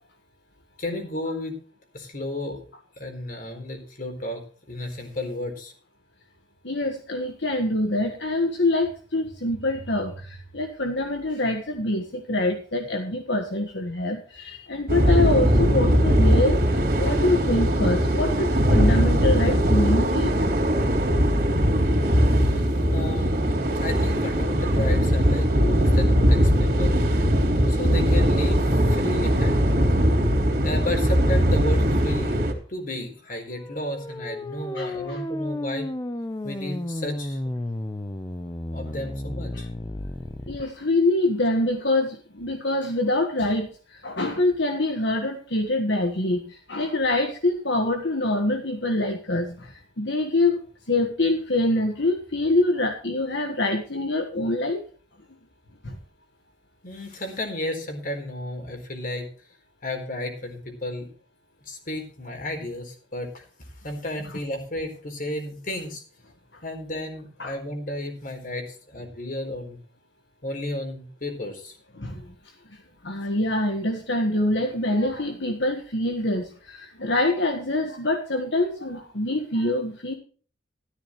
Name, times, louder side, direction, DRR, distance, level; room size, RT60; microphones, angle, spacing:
voice 1, 0.8-1.6 1.9-2.6 3.0-4.4 4.7-5.7 22.4-22.7 22.9-27.0 27.7-28.6 28.9-29.5 30.6-32.4 32.7-35.9 36.4-37.4 38.7-39.7 56.8-59.3 59.8-61.1 61.7-63.4 63.8-66.0 66.6-69.8 70.4-71.8, left 1 dB, 50° left, 3 dB, 4.2 m, -33 dB
voice 2, 6.6-16.6 17.0-20.4 34.7-35.2 39.5-39.6 40.5-50.6 50.9-54.8 55.8-56.0 67.4-67.5 72.0-72.2 73.0-80.1, left 2 dB, 70° left, 4 dB, 1.6 m, -25 dB
sound 1, 14.9-32.5, equal, 55° right, 3.3 m, -20 dB
sound 2, 33.5-40.6, left 1 dB, 20° left, 0.7 m, -33 dB
14.0 x 13.0 x 3.2 m, 0.41 s
head